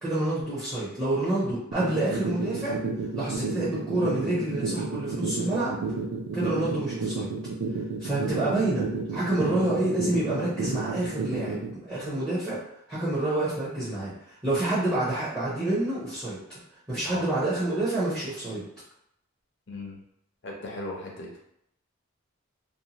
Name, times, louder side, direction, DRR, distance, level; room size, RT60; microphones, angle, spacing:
voice 1, 0.0-2.8 3.1-5.8 6.3-7.3 8.0-12.6 12.9-16.4 16.9-18.6, right 1 dB, 15° right, -10 dB, 0.7 m, -28 dB
sound 1, 1.7-11.7, right 5 dB, 65° right, 0.4 m, -31 dB
voice 2, 19.7-20.0 20.4-21.4, left 2 dB, 55° left, -2 dB, 0.6 m, -37 dB
2.7 x 2.2 x 2.8 m, 0.78 s
head